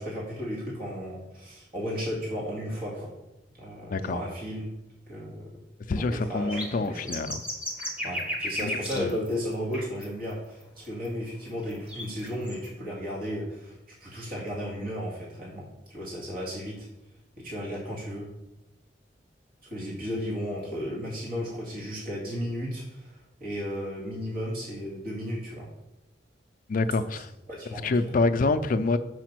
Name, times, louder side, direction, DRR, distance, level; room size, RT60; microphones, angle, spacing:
voice 1, 0.0-3.1 3.6-5.5 6.0-7.2 8.0-16.9 17.4-18.3 19.6-25.7 27.0-27.2 27.5-28.1, equal, 55° right, 2.1 m, -34 dB
voice 2, 5.9-7.4 8.6-9.1 26.7-27.3 27.8-29.0, left 3 dB, 50° left, 0.4 m, -26 dB
sound 1, 6.5-9.3 9.7-10.1 10.3-10.4 11.0-11.1 11.6-12.7, left 1 dB, 5° right, 1.2 m, -34 dB
5.0 x 4.9 x 6.1 m
head